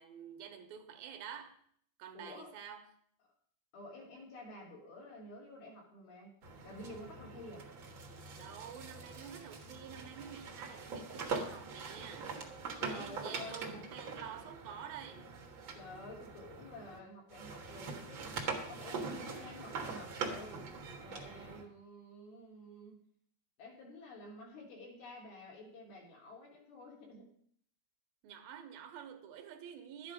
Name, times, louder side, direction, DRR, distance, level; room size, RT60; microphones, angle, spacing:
voice 1, 0.0-1.6 2.0-2.9 8.4-12.4 12.8-15.4 28.2-30.1, right 8 dB, 75° right, 2.7 m, -49 dB
voice 2, 2.1-2.5 3.7-6.3 6.6-7.7 12.8-13.8 15.7-20.6 21.0-23.0 23.6-27.3, left 1 dB, 75° left, 4.9 m, -50 dB
sound 1, 6.4-17.0 17.3-21.6, right 4 dB, 55° right, 1.4 m, -43 dB
12.5 x 9.3 x 5.1 m
omnidirectional pair, 4.4 m